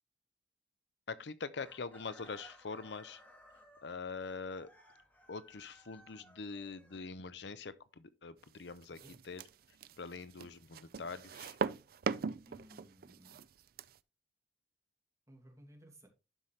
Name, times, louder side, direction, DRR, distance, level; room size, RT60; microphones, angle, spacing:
voice 1, 1.1-3.2 3.8-4.7 5.3-9.0 9.2-9.4 10.0-11.6, left 4 dB, 75° left, 0.7 m, -44 dB
Chicken rooster, 1.5-7.5, equal, 10° left, 2.1 m, -60 dB
sound 1, 8.8-14.0, right 5 dB, 55° right, 0.4 m, -40 dB
voice 2, 12.5-13.5 15.3-16.1, right 1 dB, 20° right, 2.2 m, -58 dB
12.0 x 5.7 x 3.2 m
head